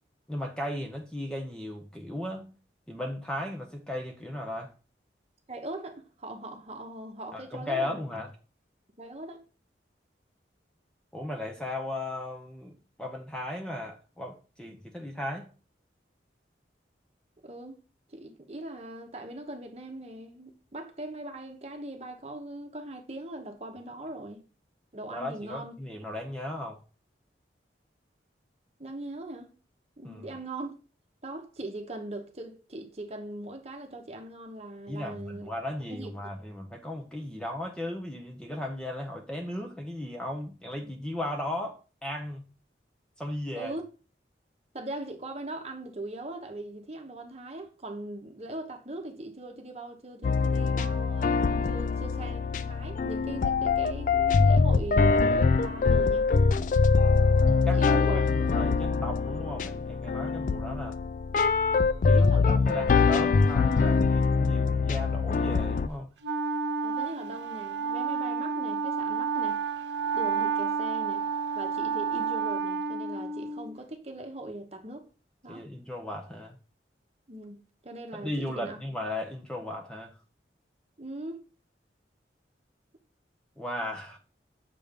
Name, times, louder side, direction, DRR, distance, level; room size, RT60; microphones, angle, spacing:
voice 1, 0.3-2.5 2.9-4.7 7.3-8.3 11.1-15.5 25.1-26.8 30.0-30.2 34.9-42.4 43.2-43.7 57.6-61.0 62.0-66.1 75.5-76.6 78.1-80.1 83.6-84.2, left 1 dB, 5° left, 0.6 m, -36 dB
voice 2, 5.5-8.0 9.0-9.4 17.4-17.8 18.1-24.4 24.9-25.7 28.8-29.5 30.0-30.8 31.2-35.5 35.9-36.3 43.6-43.8 44.7-56.3 57.7-58.2 62.0-62.7 66.8-69.6 70.1-71.2 71.5-75.1 75.4-75.7 77.3-78.8 81.0-81.4, right 1 dB, 35° right, 0.9 m, -40 dB
sound 1, 50.2-65.9, left 4 dB, 45° left, 0.3 m, -24 dB
Wind instrument woodwind instrument, 66.2-73.8, right 5 dB, 85° right, 0.8 m, -30 dB
6.8 x 3.4 x 5.1 m
head